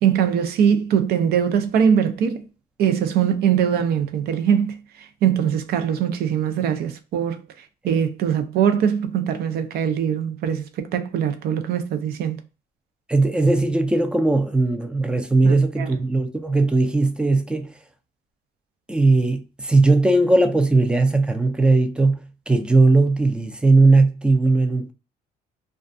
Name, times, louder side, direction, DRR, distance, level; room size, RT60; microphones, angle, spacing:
voice 1, 0.0-2.4 2.8-4.8 5.2-7.4 7.8-12.4 15.4-15.9, right 8 dB, 70° right, 0.5 m, -21 dB
voice 2, 13.1-17.7 18.9-24.9, right 3 dB, 5° right, 0.4 m, -18 dB
2.3 x 2.3 x 2.5 m
cardioid pair, 110°, 17 cm